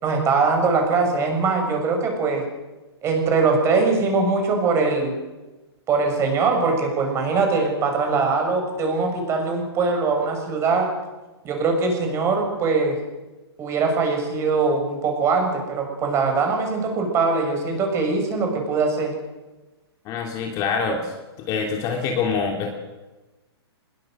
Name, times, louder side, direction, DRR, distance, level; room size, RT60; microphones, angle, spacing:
voice 1, 0.0-2.4 3.0-5.2 5.9-10.9 11.4-13.0 13.6-19.1, right 4 dB, 20° right, 3 dB, 6.5 m, -22 dB
voice 2, 20.0-21.1 21.5-22.7, left 5 dB, 25° left, 2 dB, 3.1 m, -25 dB
24.5 x 21.0 x 7.9 m, 1.1 s
hypercardioid pair, 155°, 14 cm